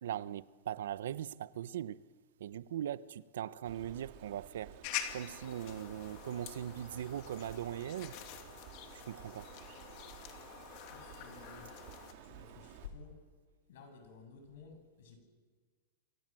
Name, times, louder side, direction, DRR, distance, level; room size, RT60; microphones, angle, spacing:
voice 1, 0.0-2.0 2.4-4.7 5.1-8.2 9.1-9.5, right 10 dB, 85° right, 0.9 m, -40 dB
Bird, 3.6-12.9, right 10 dB, 45° right, 3.5 m, -54 dB
sound 1, 4.8-12.1, left 11 dB, 40° left, 2.6 m, -46 dB
voice 2, 10.9-11.7 12.2-13.1 13.7-15.2, left 5 dB, 65° left, 8.0 m, -53 dB
29.0 x 24.5 x 7.8 m
supercardioid pair, 165°, 0 cm